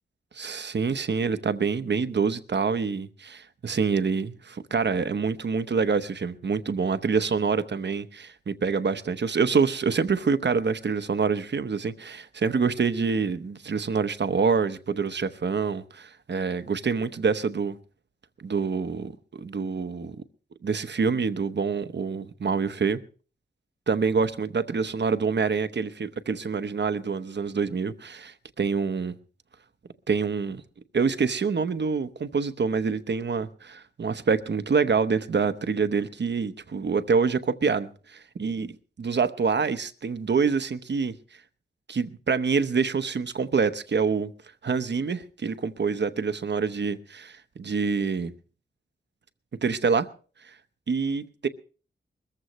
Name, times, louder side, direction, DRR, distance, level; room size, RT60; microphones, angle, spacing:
voice 1, 0.4-17.8 18.4-20.2 20.6-23.0 23.9-29.1 30.1-30.6 30.9-41.1 41.9-44.3 44.6-48.3 49.6-50.1 50.4-50.5 50.9-51.5, right 5 dB, 60° right, 0.9 m, -26 dB
21.5 x 14.5 x 3.1 m
wide cardioid pair, 85°, 20 cm